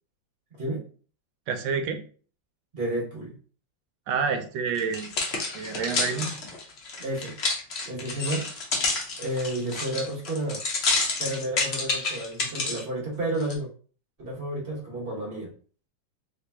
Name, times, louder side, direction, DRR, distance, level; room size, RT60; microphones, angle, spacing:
voice 1, 0.5-0.8 2.7-3.4 7.0-7.4 7.8-8.5 8.7-8.8 9.2-10.6 11.2-13.7 14.2-15.5, right 1 dB, 35° right, -3 dB, 1.1 m, -31 dB
voice 2, 1.5-2.0 4.1-5.1 5.5-6.3, right 5 dB, 80° right, 7 dB, 1.3 m, -28 dB
sound 1, 4.8-12.8 13.4-13.5, left 3 dB, 55° left, 0.7 m, -29 dB
3.3 x 2.8 x 3.4 m, 0.42 s
omnidirectional pair, 2.1 m